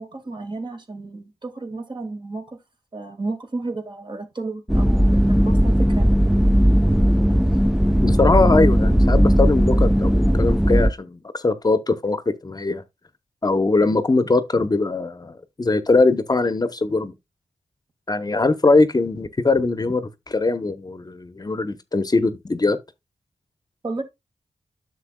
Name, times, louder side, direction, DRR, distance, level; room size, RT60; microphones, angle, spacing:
voice 1, 0.0-2.6 2.9-6.0 23.8-24.0, right 3 dB, 40° right, 1.8 m, -32 dB
sound 1, 4.7-10.9, equal, 5° right, 0.5 m, -17 dB
voice 2, 8.0-12.8 13.4-17.1 18.1-22.8, left 3 dB, 35° left, 0.8 m, -21 dB
9.9 x 6.8 x 2.2 m
cardioid pair, 60°, 11 cm